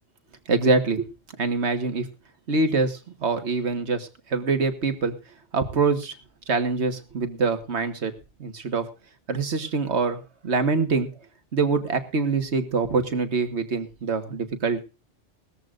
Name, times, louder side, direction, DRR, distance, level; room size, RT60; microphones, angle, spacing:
voice 1, 0.5-1.1 1.4-2.1 2.5-5.1 5.5-6.1 6.5-8.1 8.4-8.9 9.3-11.1 11.5-14.8, right 4 dB, 75° right, 8 dB, 1.8 m, -24 dB
19.0 x 14.5 x 2.5 m, 0.31 s
omnidirectional pair, 1.1 m